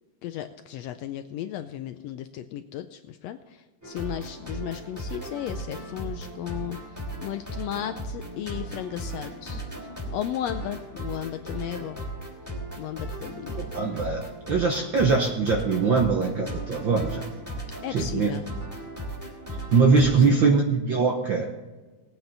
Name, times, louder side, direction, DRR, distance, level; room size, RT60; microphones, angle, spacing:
voice 1, 0.2-3.4 3.8-6.8 7.2-9.6 10.1-12.0 12.8-13.6 17.8-18.4 20.0-20.4, left 11 dB, 80° left, 9 dB, 1.5 m, -34 dB
sound 1, 3.8-20.3, right 1 dB, 5° right, 2.7 m, -36 dB
voice 2, 13.6-17.3 17.9-18.3 19.7-21.5, right 4 dB, 65° right, 2 dB, 1.2 m, -22 dB
19.0 x 9.1 x 4.0 m, 1.3 s
omnidirectional pair, 3.4 m